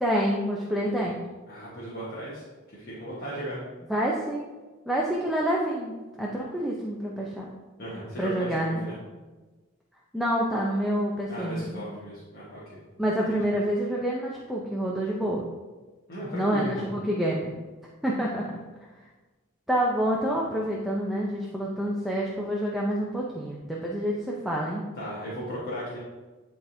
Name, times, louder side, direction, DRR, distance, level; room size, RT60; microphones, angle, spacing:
voice 1, 0.0-1.2 3.9-4.5 4.9-7.5 8.2-8.9 10.1-11.9 13.0-15.4 16.3-17.5 18.0-18.6 19.7-24.8, equal, ahead, -4 dB, 0.5 m, -27 dB
voice 2, 1.5-3.6 7.8-9.0 11.3-12.8 13.3-13.4 16.1-16.9 24.9-26.0, equal, 45° left, -8 dB, 1.3 m, -36 dB
10.5 x 3.5 x 2.7 m, 1.2 s
head